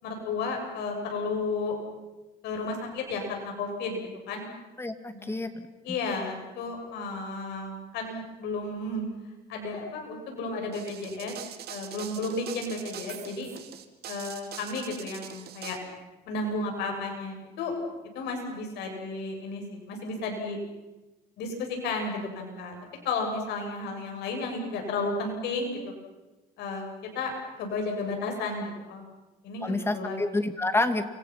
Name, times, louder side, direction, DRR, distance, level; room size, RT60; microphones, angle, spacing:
voice 1, 0.0-1.7 2.4-4.0 4.3-4.5 5.1-5.3 5.8-9.0 9.5-11.3 11.7-13.5 14.1-15.8 16.3-17.7 18.1-20.6 21.4-22.8 23.0-25.8 26.6-26.8 27.1-27.3 27.6-29.0 29.4-30.2, left 3 dB, 85° left, 2 dB, 7.8 m, -33 dB
voice 2, 4.8-5.7 29.6-31.0, left 2 dB, 15° left, 9 dB, 2.3 m, -28 dB
sound 1, 10.7-15.8, right 11 dB, 70° right, 2.4 m, -43 dB
29.0 x 25.5 x 5.9 m, 1.1 s
cardioid pair, 110°, 17 cm